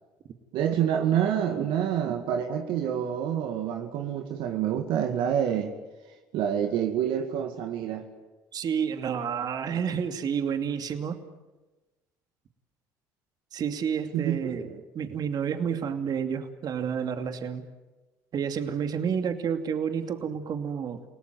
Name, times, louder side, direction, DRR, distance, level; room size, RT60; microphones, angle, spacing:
voice 1, 0.5-5.7 6.3-8.1 14.1-14.4 19.1-19.2, right 9 dB, 70° right, 5 dB, 2.2 m, -27 dB
voice 2, 8.5-11.2 13.5-17.6 18.3-21.0, right 7 dB, 50° right, 7 dB, 2.6 m, -30 dB
29.5 x 18.5 x 9.3 m, 1.2 s
hypercardioid pair, 70°, 9 cm